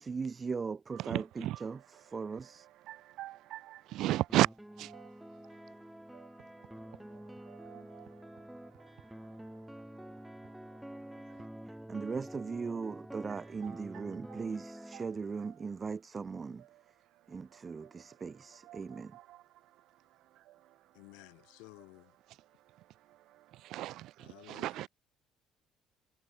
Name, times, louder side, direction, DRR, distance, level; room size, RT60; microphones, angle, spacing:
voice 1, 0.0-1.8 2.0-2.7 11.9-16.6 17.3-19.2, right 5 dB, 35° right, 1.1 m, -39 dB
voice 2, 1.0-1.6 2.9-4.5 4.8-4.9 7.6-7.8 13.6-13.8 14.9-15.1 18.7-18.8 23.7-24.0 24.5-24.9, right 15 dB, 75° right, 1.3 m, -33 dB
sound 1, 4.3-15.1, right 1 dB, 5° right, 4.4 m, -48 dB
voice 3, 20.9-22.1 24.2-24.9, left 30 dB, 90° left, 6.9 m, -54 dB
supercardioid pair, 70°, 0 cm